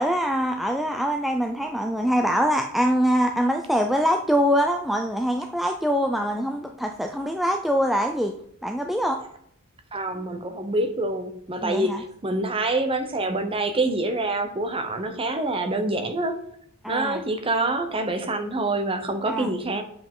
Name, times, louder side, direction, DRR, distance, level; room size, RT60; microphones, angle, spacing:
voice 1, 0.0-8.3 8.6-9.2 11.6-12.0 16.8-17.2 19.3-19.5, equal, ahead, 3 dB, 0.3 m, -24 dB
voice 2, 9.9-16.4 16.9-19.8, right 2 dB, 25° right, 7 dB, 0.7 m, -26 dB
7.1 x 5.3 x 3.7 m, 0.68 s
head